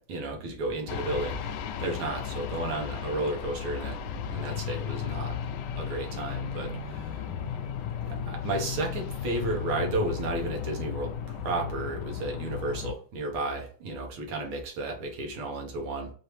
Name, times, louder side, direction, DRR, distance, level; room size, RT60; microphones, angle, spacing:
voice 1, 0.1-5.4 5.8-7.2 8.0-16.1, right 2 dB, 75° right, 1 dB, 1.9 m, -33 dB
sound 1, 0.9-12.9, left 7 dB, 85° left, 0.9 m, -35 dB
4.9 x 2.7 x 3.1 m, 0.44 s
omnidirectional pair, 2.4 m